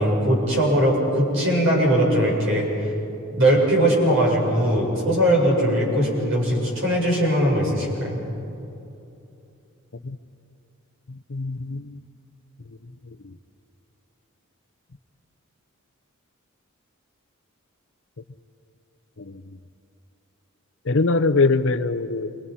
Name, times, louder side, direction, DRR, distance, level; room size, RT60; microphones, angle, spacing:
voice 1, 0.0-2.7 3.3-8.2, right 1 dB, 60° right, -3 dB, 7.8 m, -20 dB
voice 2, 11.1-12.0 13.2-13.3 19.2-19.6 20.8-22.4, left 3 dB, 60° left, 11 dB, 0.8 m, -23 dB
28.5 x 24.5 x 5.7 m, 2.8 s
head